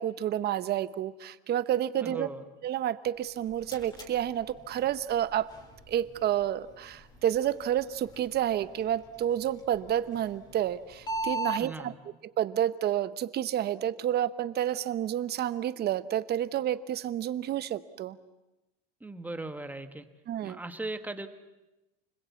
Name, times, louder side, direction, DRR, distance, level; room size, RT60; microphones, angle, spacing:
voice 1, 0.0-2.3 2.6-5.5 5.9-11.9 12.2-18.2 20.3-20.6, right 11 dB, 35° right, 14 dB, 1.0 m, -30 dB
voice 2, 2.0-2.4 11.6-11.9 19.0-20.1 20.4-21.3, right 2 dB, 5° right, 8 dB, 1.4 m, -38 dB
sound 1, 3.2-11.6, right 2 dB, 15° left, 3.8 m, -41 dB
29.5 x 21.0 x 8.5 m, 1.0 s
cardioid pair, 150°, 30 cm